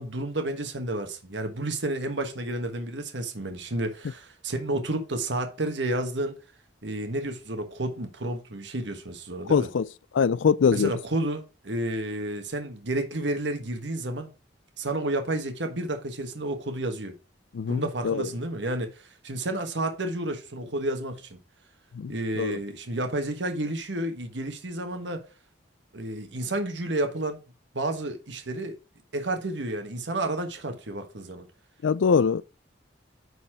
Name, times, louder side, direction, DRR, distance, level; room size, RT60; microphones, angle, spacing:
voice 1, 0.0-6.3 6.8-9.7 10.7-14.3 14.8-17.1 17.7-21.4 22.1-25.3 25.9-27.4 27.7-28.8 29.1-31.5, right 1 dB, 70° right, 1.4 m, -31 dB
voice 2, 9.5-9.9 10.1-10.9 17.5-18.3 21.9-22.6 31.8-32.4, left 6 dB, 90° left, 0.4 m, -23 dB
9.4 x 4.2 x 4.7 m
head